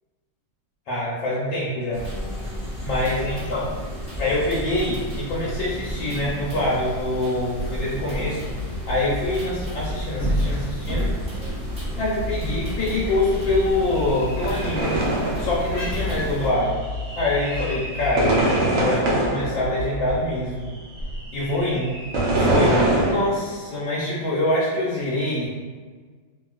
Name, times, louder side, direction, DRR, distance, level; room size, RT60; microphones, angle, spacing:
voice 1, 0.9-2.1 2.8-3.7 4.2-8.4 8.9-11.1 12.0-15.0 15.4-16.8 17.2-18.4 18.7-20.7 21.3-21.9 22.3-25.5, left 1 dB, 80° left, -7 dB, 1.4 m, -25 dB
sound 1, 1.9-16.5, equal, 5° right, 0.4 m, -31 dB
sound 2, 8.4-23.1, right 1 dB, 65° right, 0.8 m, -26 dB
sound 3, 12.9-18.2, left 1 dB, 55° left, 0.9 m, -44 dB
2.9 x 2.8 x 2.3 m, 1.5 s
omnidirectional pair, 2.0 m